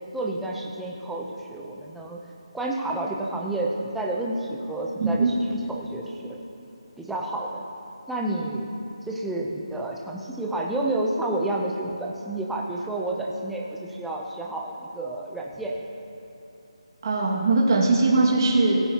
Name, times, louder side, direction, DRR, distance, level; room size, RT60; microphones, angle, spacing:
voice 1, 0.1-2.2 2.5-6.4 7.0-7.6 8.1-8.7 9.1-15.7, right 2 dB, 5° right, -2 dB, 0.7 m, -30 dB
voice 2, 5.0-5.3 17.0-18.8, right 3 dB, 40° right, -3 dB, 2.0 m, -20 dB
16.5 x 14.5 x 2.9 m, 2.8 s
figure-of-eight pair, 165°, 3 cm